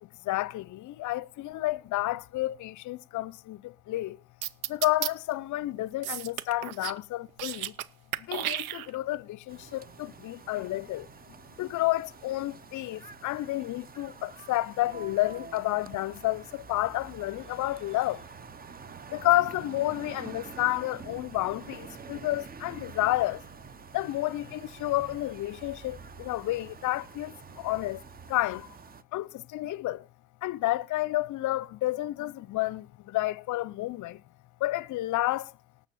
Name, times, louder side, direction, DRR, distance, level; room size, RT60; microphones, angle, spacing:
voice 1, 0.0-4.2 4.7-7.7 8.2-11.1 11.6-18.2 19.1-23.4 23.9-28.0 28.3-28.8 29.1-30.1 30.4-34.2 34.6-35.5, left 17 dB, 45° left, 0.7 m, -30 dB
sound 1, 4.4-5.1 6.0-7.0 7.3-7.9 8.1-9.2, right 13 dB, 85° right, 0.7 m, -33 dB
sound 2, 9.5-29.0, right 6 dB, 20° right, 0.7 m, -47 dB
18.5 x 7.2 x 4.2 m
hypercardioid pair, 75°, 41 cm